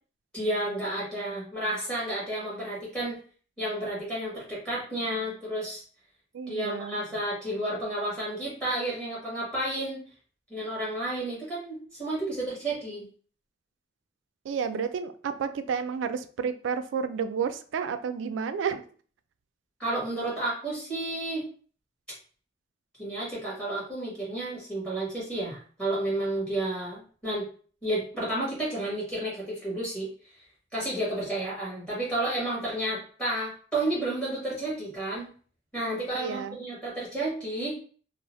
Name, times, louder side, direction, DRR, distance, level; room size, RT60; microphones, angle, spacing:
voice 1, 0.3-3.2 3.6-5.8 6.5-10.0 10.5-13.1 19.8-21.5 23.0-27.5 27.8-30.1 30.7-35.3 35.7-37.8, right 1 dB, 5° left, -7 dB, 1.2 m, -31 dB
voice 2, 6.3-7.0 14.5-18.8 36.2-36.6, right 6 dB, 80° right, 10 dB, 0.3 m, -31 dB
2.7 x 2.0 x 3.0 m, 0.43 s
head